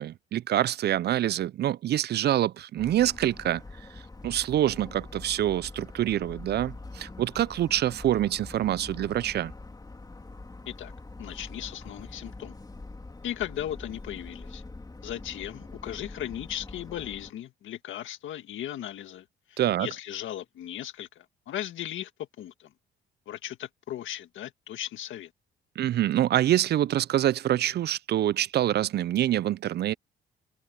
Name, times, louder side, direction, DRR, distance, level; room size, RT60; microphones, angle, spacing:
voice 1, 0.0-3.6 4.2-9.5 19.6-19.9 25.8-29.9, right 12 dB, 55° right, 0.4 m, -26 dB
Motor vehicle (road) / Siren, 2.8-17.3, left 3 dB, 20° left, 3.4 m, -44 dB
voice 2, 11.2-12.6 13.2-14.6 15.0-22.1 22.4-22.7 23.3-25.3, left 12 dB, 80° left, 1.8 m, -37 dB
open air
cardioid pair, 90°, 20 cm